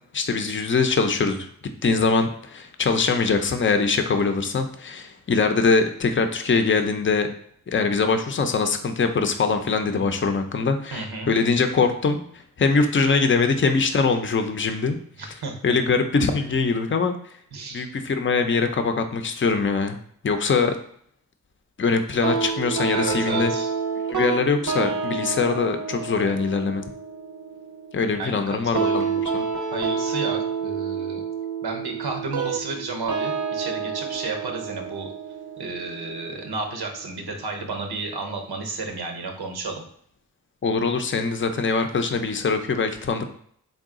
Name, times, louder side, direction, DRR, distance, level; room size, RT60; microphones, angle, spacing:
voice 1, 0.1-1.5 1.8-7.3 7.7-12.2 12.6-15.0 15.6-17.1 17.7-20.0 20.2-20.7 21.8-23.5 24.1-26.8 27.9-29.4 40.6-43.3, left 4 dB, 35° left, 7 dB, 0.5 m, -22 dB
voice 2, 10.9-11.3 15.2-15.6 17.5-17.9 22.9-23.7 28.2-29.2 29.7-31.2 31.6-35.1 35.6-39.8, right 3 dB, 90° right, 3 dB, 0.8 m, -32 dB
sound 1, 22.2-37.2, right 5 dB, 55° right, 0.6 m, -29 dB
3.8 x 2.3 x 3.6 m, 0.63 s
cardioid pair, 45°, 37 cm